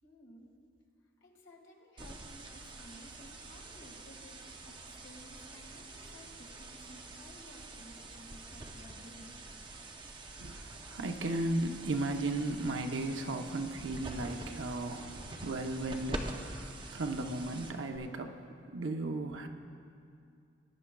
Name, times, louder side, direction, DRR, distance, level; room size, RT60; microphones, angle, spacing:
voice 1, 0.0-0.6 1.2-9.3, equal, 85° left, -1 dB, 1.8 m, -55 dB
sound 1, 2.0-18.0, right 2 dB, 25° right, 0.6 m, -46 dB
voice 2, 10.4-19.5, right 2 dB, 80° right, 5 dB, 0.7 m, -36 dB
20.0 x 10.0 x 2.3 m, 2.5 s
head